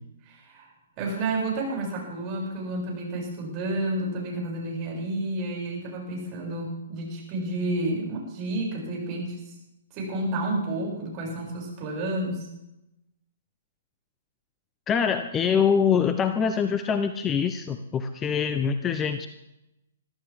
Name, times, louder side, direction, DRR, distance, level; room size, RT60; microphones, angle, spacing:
voice 1, 0.3-0.7 1.0-9.5 9.9-12.5, right 2 dB, 35° right, -2 dB, 7.4 m, -30 dB
voice 2, 14.9-19.3, left 7 dB, 20° left, 9 dB, 0.9 m, -24 dB
22.5 x 14.0 x 3.7 m, 0.89 s
figure-of-eight pair, 125°, 0 cm